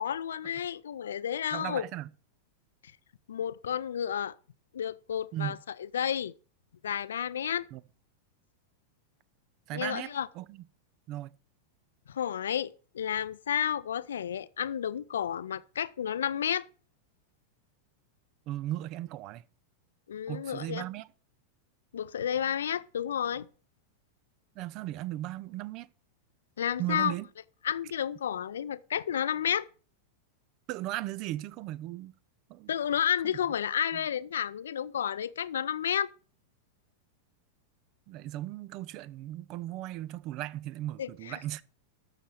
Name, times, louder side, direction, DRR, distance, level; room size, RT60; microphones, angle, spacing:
voice 1, 0.0-1.8 3.3-4.3 4.7-6.3 6.8-7.6 9.7-10.3 12.1-16.6 20.1-20.9 21.9-23.5 26.6-27.1 27.6-29.7 32.7-36.1 41.0-41.4, left 9 dB, 65° left, 0.5 m, -31 dB
voice 2, 1.5-2.1 5.3-5.6 7.7-7.8 9.7-10.6 11.1-11.3 18.5-19.4 20.3-21.1 24.6-25.9 26.8-27.3 30.7-32.1 32.5-32.7 33.9-34.0 38.1-41.6, right 15 dB, 40° right, 0.6 m, -37 dB
12.5 x 6.7 x 5.9 m
figure-of-eight pair, 90°, 0 cm